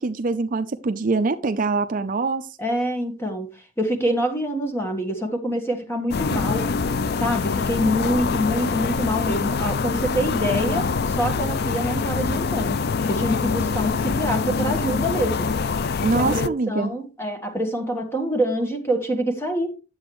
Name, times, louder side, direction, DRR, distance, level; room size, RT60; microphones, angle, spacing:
voice 1, 0.0-2.5 16.0-16.9, right 3 dB, 40° right, 0.5 m, -24 dB
voice 2, 2.6-6.7 7.2-12.8 13.1-15.5 16.1-19.8, equal, 10° left, 1.4 m, -26 dB
sound 1, 6.1-16.5, left 5 dB, 50° left, 0.4 m, -24 dB
10.5 x 7.6 x 3.1 m
head